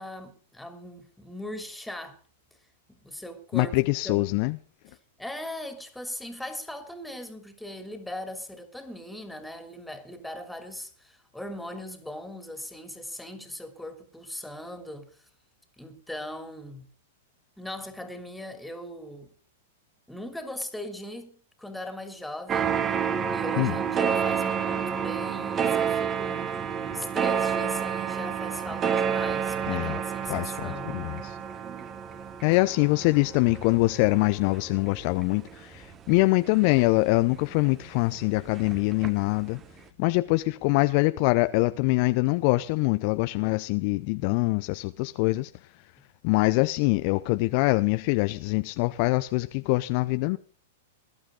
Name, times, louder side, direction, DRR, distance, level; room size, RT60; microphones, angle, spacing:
voice 1, 0.0-2.2 2.9-3.8 4.0-4.2 5.2-15.2 15.8-16.9 17.6-19.3 20.1-22.7 23.3-31.0 46.0-46.1, left 1 dB, 5° left, 3.1 m, -39 dB
voice 2, 3.5-4.6 23.6-23.7 29.7-30.0 30.3-31.4 32.4-39.6 40.0-45.5 46.2-50.4, left 23 dB, 50° left, 0.7 m, -24 dB
sound 1, 22.5-37.6 38.0-39.4 39.6-39.7, right 7 dB, 25° right, 1.4 m, -29 dB
20.0 x 12.0 x 3.8 m
hypercardioid pair, 105°, 0 cm